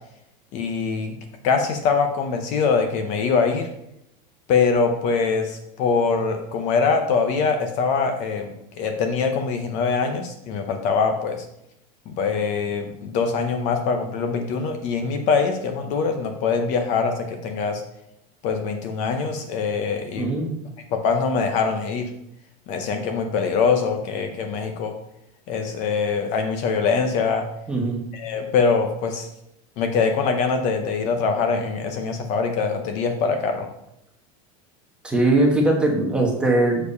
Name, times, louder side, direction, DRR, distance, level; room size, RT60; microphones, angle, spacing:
voice 1, 0.5-1.2 1.4-3.7 4.5-8.5 8.8-11.5 12.1-17.8 18.4-20.3 20.9-22.1 22.7-25.0 25.5-27.5 28.1-29.3 29.8-33.7, left 5 dB, 40° left, 5 dB, 0.7 m, -23 dB
voice 2, 20.2-20.5 27.7-28.0 35.0-36.9, right 2 dB, 5° right, -1 dB, 1.1 m, -20 dB
6.8 x 4.7 x 5.3 m, 0.81 s
supercardioid pair, 170°, 19 cm